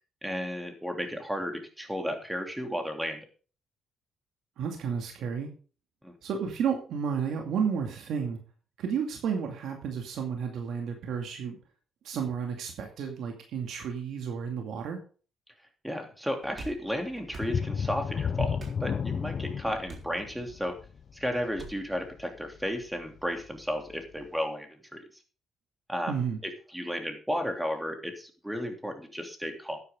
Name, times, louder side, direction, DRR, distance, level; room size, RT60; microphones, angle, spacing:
voice 1, 0.2-3.2 6.0-6.1 15.8-20.7 21.1-25.0 25.9-26.2 26.4-29.8, equal, 5° right, 4 dB, 3.0 m, -33 dB
voice 2, 4.6-5.5 6.2-8.4 8.8-11.6 12.0-15.0 26.1-26.4, right 7 dB, 75° right, 3 dB, 2.3 m, -32 dB
sound 1, 16.5-16.8 17.3-17.5 18.6-18.8 19.9-20.1 21.6-21.8, right 2 dB, 45° right, 3.7 m, -43 dB
sound 2, 17.3-22.8 23.2-23.4 23.9-24.0, left 6 dB, 50° left, 0.6 m, -33 dB
12.5 x 9.8 x 3.7 m, 0.38 s
cardioid pair, 90°, 0 cm